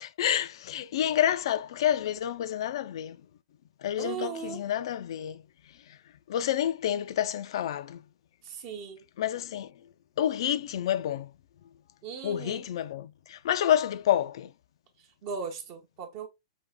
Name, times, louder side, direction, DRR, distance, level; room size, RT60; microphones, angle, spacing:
voice 1, 0.0-3.2 3.8-5.4 6.3-8.0 9.2-9.7 10.2-11.3 12.2-14.5, left 11 dB, 60° left, 0.3 m, -28 dB
voice 2, 4.0-4.6 8.4-9.0 12.0-12.6 15.2-16.3, right 6 dB, 35° right, 0.6 m, -37 dB
5.2 x 2.8 x 2.2 m
supercardioid pair, 165°, 3 cm